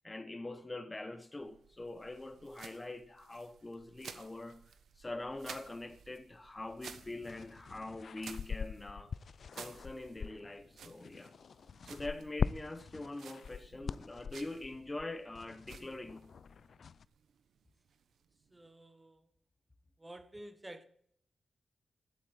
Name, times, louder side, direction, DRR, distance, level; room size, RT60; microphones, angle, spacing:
voice 1, 0.0-4.6 5.0-9.1 9.5-11.3 11.8-16.3, left 2 dB, 20° left, 0.9 m, -44 dB
sound 1, 1.4-18.7, right 7 dB, 90° right, 1.0 m, -56 dB
sound 2, 6.6-17.1, left 6 dB, 60° left, 0.4 m, -43 dB
voice 2, 18.5-19.3 20.0-20.9, right 1 dB, 20° right, 1.2 m, -51 dB
12.0 x 8.4 x 7.3 m
cardioid pair, 95°, 0 cm